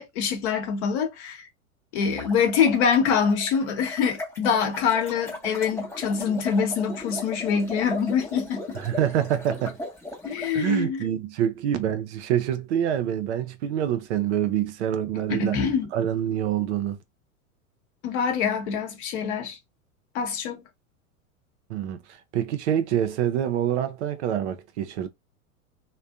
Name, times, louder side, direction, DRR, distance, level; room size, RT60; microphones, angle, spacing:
voice 1, 0.0-1.5 1.9-8.8 10.2-11.0 15.3-15.9 18.0-19.6 20.1-20.6, left 6 dB, 50° left, 1.0 m, -25 dB
sound 1, 2.0-10.5, left 2 dB, 5° left, 0.6 m, -37 dB
voice 2, 8.7-9.8 10.5-15.6 15.9-17.0 21.7-25.1, right 10 dB, 55° right, 0.5 m, -26 dB
2.5 x 2.1 x 2.4 m
figure-of-eight pair, 90°, 43 cm